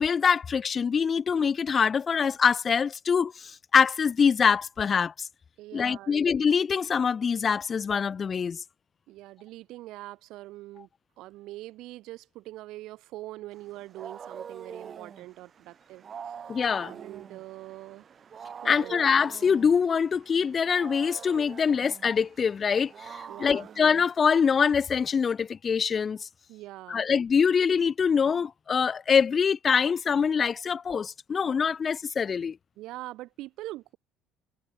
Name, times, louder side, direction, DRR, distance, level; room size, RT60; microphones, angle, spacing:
voice 1, 0.0-5.3 5.7-8.6 16.5-16.9 18.7-26.3 26.9-32.6, left 6 dB, 30° left, 0.3 m, -24 dB
voice 2, 5.6-6.2 9.1-10.9 11.2-16.3 16.8-18.1 18.6-19.0 23.3-23.7 26.5-27.1 32.8-34.0, right 17 dB, 65° right, 4.6 m, -43 dB
Wild animals, 13.6-24.8, right 7 dB, 30° right, 3.3 m, -45 dB
cardioid pair, 140°, 0 cm